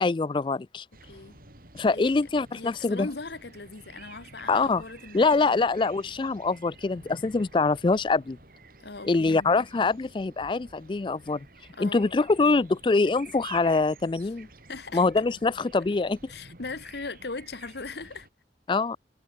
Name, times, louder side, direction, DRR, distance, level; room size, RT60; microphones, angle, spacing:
voice 1, 0.0-0.8 1.7-3.1 4.5-4.8 5.1-8.4 9.0-11.5 11.8-14.5 14.9-16.2 18.7-19.0, left 3 dB, 25° left, 0.3 m, -24 dB
sound 1, 0.9-18.3, right 3 dB, 50° right, 5.1 m, -51 dB
voice 2, 2.5-5.7 8.8-9.7 11.7-12.2 14.7-15.0 16.3-18.3, left 3 dB, 65° left, 1.2 m, -39 dB
head